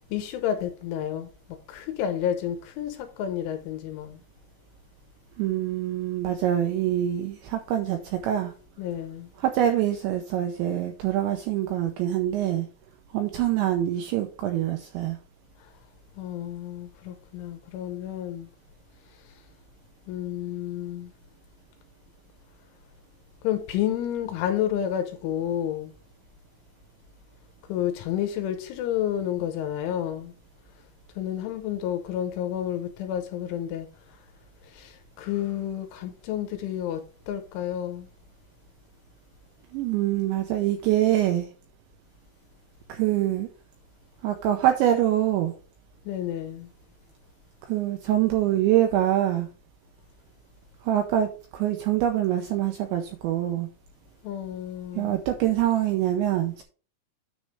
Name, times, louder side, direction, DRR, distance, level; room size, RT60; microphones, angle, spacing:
voice 1, 0.1-1.3 1.7-4.2 8.8-9.3 15.6-15.7 16.2-18.5 20.1-21.1 23.4-25.9 27.7-30.3 31.2-33.9 34.7-38.1 46.1-46.7 54.2-55.2, left 10 dB, 80° left, 3.0 m, -30 dB
voice 2, 5.4-8.5 9.4-12.7 13.1-15.2 39.7-41.5 42.9-43.5 44.2-45.5 47.6-49.5 50.8-53.7 54.9-56.6, right 12 dB, 85° right, 2.6 m, -25 dB
9.6 x 3.2 x 6.4 m
omnidirectional pair, 6.0 m